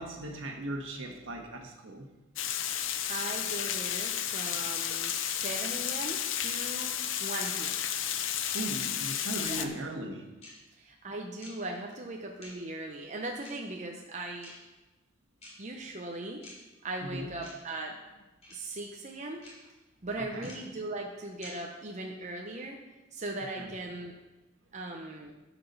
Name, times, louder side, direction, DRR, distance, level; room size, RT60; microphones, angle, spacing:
voice 1, 0.0-2.1 8.5-10.3 17.1-17.3 20.3-20.5 23.6-23.7, right 1 dB, 70° right, 3 dB, 1.5 m, -38 dB
Water, 2.4-9.7, left 10 dB, 65° left, 0.7 m, -32 dB
voice 2, 3.1-7.9 9.5-9.7 10.8-14.5 15.6-16.4 16.8-18.0 18.5-19.4 20.0-22.8 23.1-24.1 24.7-25.3, right 2 dB, 35° right, 1 dB, 0.8 m, -39 dB
sound 1, 3.4-3.5 4.4-4.5 5.4-5.5 6.4-6.5 7.4-7.5 8.4-8.5 9.4-9.5 10.4-10.5 11.4-11.5 12.4-12.5 13.4-13.5 14.4-14.5 15.4-15.5 16.4-16.5 17.4-17.5 18.4-18.5 19.4-19.5 20.4-20.5 21.4-21.5, left 2 dB, 35° left, 3.6 m, -47 dB
12.5 x 6.0 x 5.5 m, 1.1 s
head